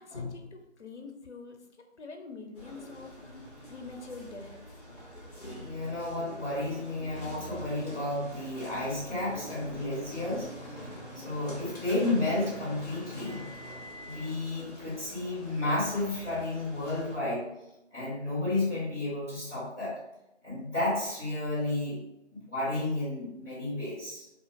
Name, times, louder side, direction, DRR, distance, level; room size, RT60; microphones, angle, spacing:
voice 1, 0.0-4.8, left 3 dB, 70° left, 4 dB, 0.5 m, -46 dB
sound 1, 2.5-17.2, equal, 35° left, 1.1 m, -45 dB
voice 2, 5.6-10.8 11.1-13.4 14.0-17.4 17.9-20.0 20.4-22.0 22.3-24.2, left 2 dB, 15° right, -18 dB, 1.3 m, -32 dB
2.8 x 2.6 x 2.5 m, 0.88 s
figure-of-eight pair, 165°, 36 cm